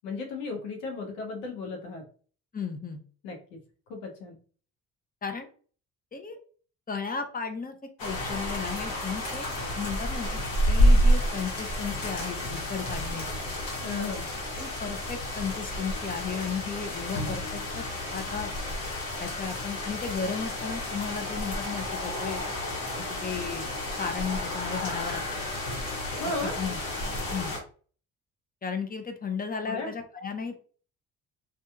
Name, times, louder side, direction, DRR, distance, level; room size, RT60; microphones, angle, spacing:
voice 1, 0.0-2.1 3.2-3.6 3.9-4.4 13.8-14.3 26.2-26.5 29.6-29.9, left 3 dB, 85° left, 2 dB, 0.8 m, -35 dB
voice 2, 2.5-3.0 5.2-5.5 6.1-6.4 6.9-7.8 8.0-9.5 9.8-10.4 10.7-13.3 14.6-17.9 18.1-18.5 19.2-22.4 23.0-23.7 24.0-25.2 26.2-26.8 27.3-27.6 28.6-30.6, left 6 dB, 25° left, 6 dB, 0.7 m, -34 dB
sound 1, 8.0-27.6, equal, 65° left, 1.2 m, -29 dB
2.6 x 2.4 x 2.3 m, 0.42 s
hypercardioid pair, 50°, 37 cm